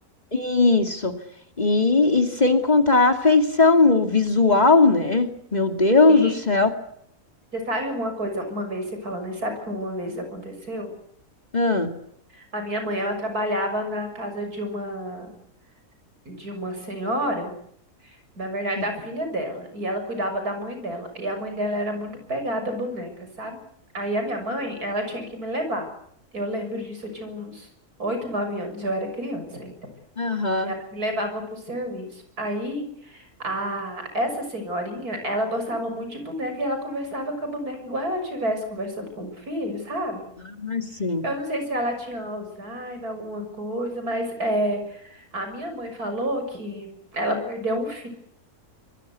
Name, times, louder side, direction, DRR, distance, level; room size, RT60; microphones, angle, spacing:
voice 1, 0.3-1.1 1.6-6.7 11.5-11.9 30.2-30.7 40.6-41.2, left 3 dB, 25° left, 6 dB, 2.6 m, -19 dB
voice 2, 6.1-6.4 7.5-10.9 12.3-15.3 16.3-17.5 18.0-23.6 23.9-25.9 26.3-27.7 28.0-29.8 30.6-40.3 41.2-48.1, equal, 80° right, 6 dB, 7.0 m, -29 dB
25.0 x 22.5 x 8.3 m, 0.71 s
omnidirectional pair, 1.6 m